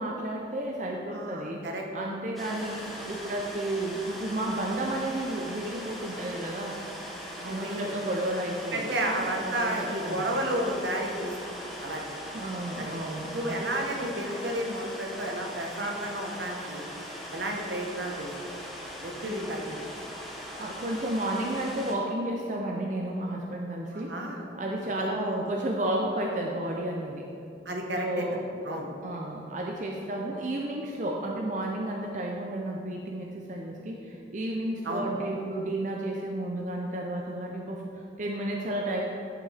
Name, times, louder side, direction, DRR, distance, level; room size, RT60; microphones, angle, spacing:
voice 1, 0.0-1.7 1.9-6.8 7.4-10.3 12.3-13.7 20.6-24.1 24.6-27.3 27.9-28.4 29.0-39.0, right 1 dB, 45° right, 0 dB, 0.5 m, -32 dB
voice 2, 1.1-1.8 7.3-7.9 8.7-11.5 11.8-12.0 12.8-12.9 13.3-16.8 17.3-18.5 19.0-20.0 23.9-24.5 25.0-25.4 27.6-28.2 28.6-28.9 34.8-35.1, right 1 dB, 75° right, 1 dB, 1.1 m, -32 dB
sound 1, 2.4-22.0, equal, ahead, 0.8 m, -41 dB
10.5 x 5.9 x 3.4 m, 2.6 s
head